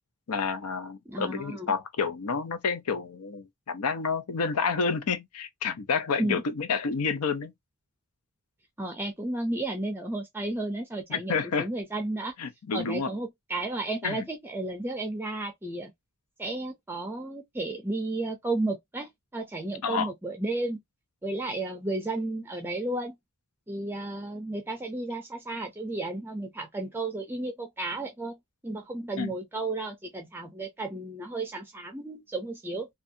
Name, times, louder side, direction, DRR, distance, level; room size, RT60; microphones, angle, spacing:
voice 1, 0.3-7.5 11.1-11.7 12.4-13.1 14.0-14.2 19.8-20.1 29.2-29.3, left 5 dB, 80° left, 0.6 m, -29 dB
voice 2, 1.1-1.7 6.2-6.4 8.8-12.3 12.7-15.9 16.4-20.8 21.2-23.1 23.7-28.4 28.6-32.9, right 2 dB, 10° right, 0.5 m, -33 dB
2.6 x 2.3 x 2.6 m
head